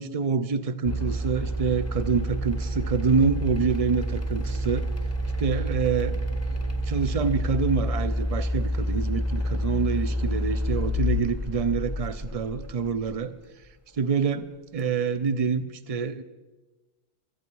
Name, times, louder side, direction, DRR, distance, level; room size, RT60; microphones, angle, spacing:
voice 1, 0.0-4.9 5.4-6.2 6.5-13.3 13.9-14.5 14.7-16.2, right 5 dB, 40° right, 14 dB, 0.5 m, -26 dB
sound 1, 0.8-13.1, equal, 15° left, 0.8 m, -28 dB
16.5 x 12.5 x 4.7 m, 1.2 s
omnidirectional pair, 1.3 m